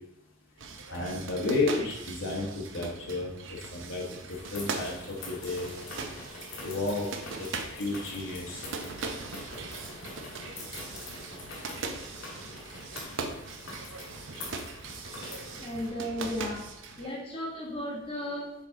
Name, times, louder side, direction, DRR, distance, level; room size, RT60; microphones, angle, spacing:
sound 1, 0.6-17.1, right 4 dB, 70° right, 0.7 m, -40 dB
voice 1, 0.9-4.2 4.5-5.7 6.6-7.5 7.7-8.7, left 3 dB, 70° left, -2 dB, 1.4 m, -32 dB
sound 2, 4.3-15.9, left 2 dB, 90° left, 1.9 m, -44 dB
voice 2, 15.6-16.7 17.0-18.5, left 1 dB, 30° left, -4 dB, 1.3 m, -35 dB
6.8 x 4.0 x 3.7 m, 0.87 s
head